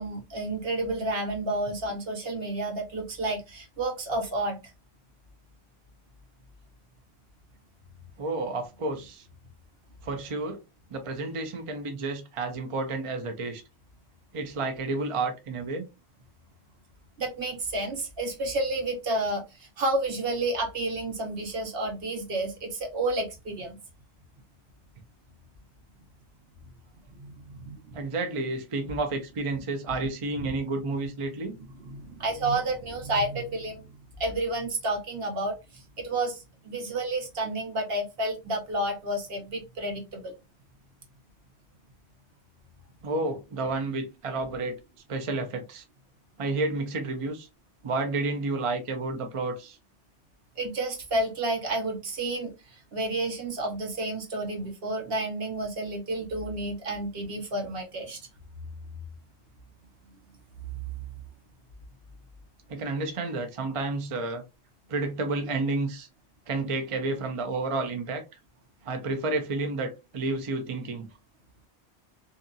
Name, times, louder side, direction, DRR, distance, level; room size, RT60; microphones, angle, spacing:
voice 1, 0.0-4.6 17.2-23.8 27.2-28.0 30.4-30.5 31.8-33.9 34.2-40.3 50.6-58.2 60.7-60.8, right 2 dB, 65° right, 1.1 m, -30 dB
voice 2, 8.2-9.2 10.0-10.6 10.9-13.6 14.3-15.8 27.9-31.6 43.0-44.8 45.1-45.8 46.4-47.5 47.8-49.8 62.7-64.4 64.9-66.1 66.5-68.2 68.8-71.1, right 3 dB, 40° right, 0.5 m, -30 dB
2.7 x 2.4 x 2.6 m
omnidirectional pair, 1.1 m